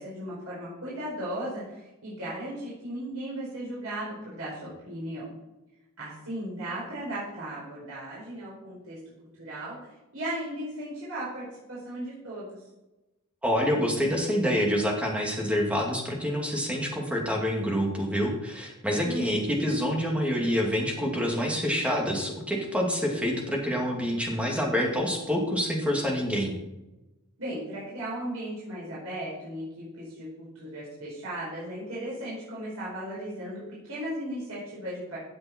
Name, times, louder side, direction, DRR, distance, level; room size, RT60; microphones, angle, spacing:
voice 1, 0.0-5.2 6.0-9.0 9.4-9.8 10.1-12.6 19.0-19.5 27.4-35.2, right 1 dB, 85° right, -7 dB, 4.9 m, -36 dB
voice 2, 13.4-26.5, equal, 5° right, 0 dB, 2.6 m, -27 dB
16.0 x 7.7 x 4.6 m, 1.0 s
head